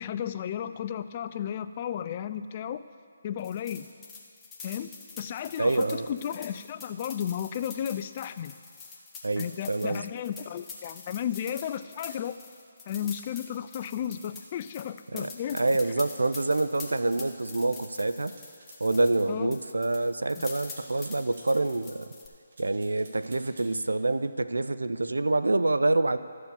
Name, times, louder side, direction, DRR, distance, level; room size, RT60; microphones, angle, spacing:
voice 1, 0.0-2.8 3.2-3.9 4.6-4.9 5.2-8.5 9.4-12.4 12.9-15.6 19.3-19.5 20.4-20.5, left 9 dB, 35° left, 12 dB, 0.3 m, -34 dB
sound 1, 3.4-19.3 19.5-22.3, left 4 dB, 10° left, 1.0 m, -45 dB
voice 2, 5.6-6.1 9.2-10.0 15.1-18.3 18.8-22.1 22.6-26.2, right 2 dB, 90° right, 13 dB, 0.4 m, -27 dB
sound 2, 18.3-19.2 20.4-21.5 22.5-23.7, right 2 dB, 55° right, 1.8 m, -52 dB
13.0 x 4.7 x 6.9 m, 2.3 s
figure-of-eight pair, 155°, 0 cm